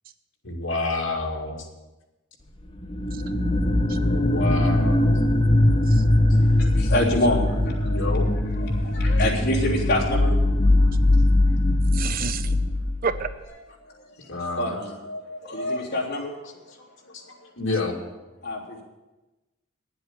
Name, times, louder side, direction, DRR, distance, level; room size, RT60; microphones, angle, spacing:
voice 1, 0.4-1.7 4.1-5.2 7.9-8.3 14.3-14.8 17.1-18.1, left 2 dB, 70° left, -1 dB, 2.3 m, -29 dB
sound 1, 2.7-13.3, left 1 dB, 25° left, 1.2 m, -21 dB
voice 2, 6.3-8.2 8.6-10.9 14.3-16.3 18.4-18.8, left 1 dB, 50° left, -5 dB, 3.3 m, -27 dB
voice 3, 11.9-12.6 13.0-13.3, right 6 dB, 45° right, 11 dB, 0.6 m, -29 dB
10.5 x 7.8 x 9.6 m, 1.1 s
head